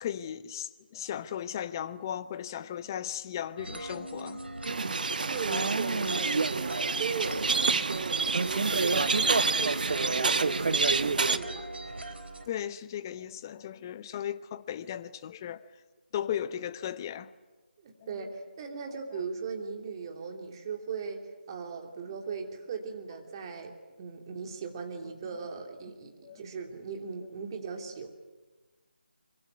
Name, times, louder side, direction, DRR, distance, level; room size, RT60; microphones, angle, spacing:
voice 1, 0.0-4.4 4.8-4.9 12.5-15.7 16.1-17.3 26.2-26.4, left 10 dB, 20° left, 0.8 m, -36 dB
sound 1, 3.6-12.5, right 2 dB, 75° right, 3.9 m, -40 dB
sound 2, 4.7-11.4, right 4 dB, 50° right, 1.2 m, -27 dB
voice 2, 5.1-11.7 17.8-21.2 21.5-28.2, right 5 dB, 25° right, 3.0 m, -38 dB
25.0 x 24.0 x 9.4 m
figure-of-eight pair, 155°, 6 cm